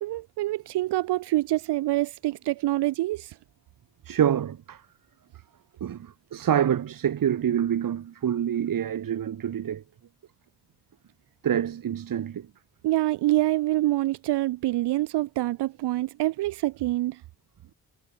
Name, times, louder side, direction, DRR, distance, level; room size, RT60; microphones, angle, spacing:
voice 1, 0.0-3.4 12.8-17.2, right 17 dB, 80° right, 0.5 m, -26 dB
voice 2, 4.0-4.8 5.8-9.8 11.4-12.5, right 9 dB, 55° right, 1.0 m, -26 dB
cardioid pair, 85°, 41 cm